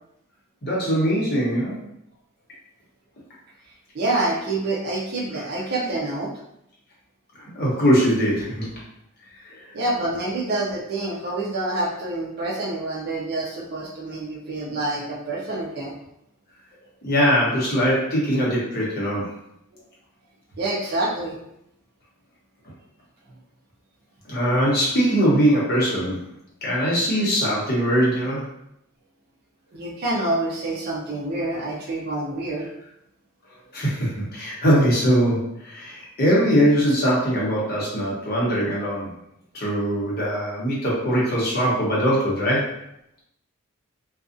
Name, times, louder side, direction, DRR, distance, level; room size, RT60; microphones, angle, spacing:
voice 1, 0.6-1.8 7.3-8.7 17.0-19.4 24.2-26.2 26.6-28.4 33.7-39.1 39.5-42.7, equal, 45° left, -6 dB, 0.9 m, -21 dB
voice 2, 3.9-6.3 9.7-15.9 20.6-21.4 29.7-32.7, right 2 dB, 45° right, -4 dB, 0.5 m, -27 dB
2.5 x 2.3 x 2.5 m, 0.78 s
head